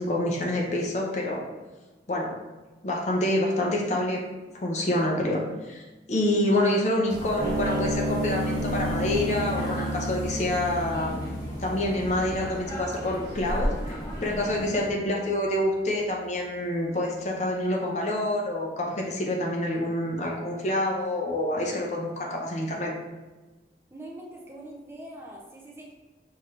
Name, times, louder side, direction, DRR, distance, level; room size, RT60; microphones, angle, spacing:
voice 1, 0.0-1.4 2.1-2.3 2.8-4.2 4.6-11.3 11.6-22.9, left 1 dB, 40° left, -1 dB, 0.7 m, -27 dB
sound 1, 7.1-14.9, equal, 20° left, 1.2 m, -35 dB
sound 2, 7.4-14.0, right 1 dB, 75° right, 1.4 m, -32 dB
sound 3, 7.7-11.1 11.5-11.9, left 1 dB, 55° right, 1.1 m, -40 dB
voice 2, 23.9-25.9, right 1 dB, 15° right, -3 dB, 0.6 m, -43 dB
5.7 x 2.8 x 3.2 m, 1.2 s
head